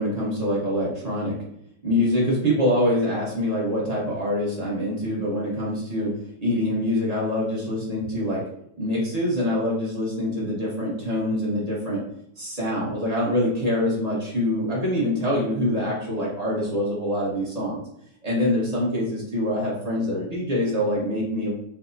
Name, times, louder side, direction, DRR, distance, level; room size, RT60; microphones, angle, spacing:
voice 1, 0.0-1.4 1.8-6.1 6.4-8.4 8.8-12.0 12.4-17.8 18.2-21.5, left 1 dB, 40° right, -5 dB, 0.6 m, -25 dB
4.8 x 2.0 x 2.4 m, 0.71 s
omnidirectional pair, 2.0 m